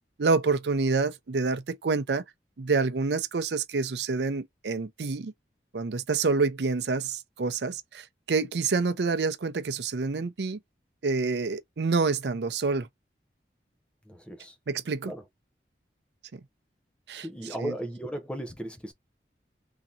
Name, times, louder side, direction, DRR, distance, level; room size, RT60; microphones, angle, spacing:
voice 1, 0.2-2.2 2.6-5.3 5.7-10.6 11.0-12.9 14.7-15.1 17.1-17.3 17.6-17.7, right 4 dB, 80° right, 0.5 m, -27 dB
voice 2, 14.1-14.5 15.1-15.2 17.2-18.9, right 1 dB, 5° left, 0.6 m, -36 dB
3.6 x 2.8 x 2.7 m
head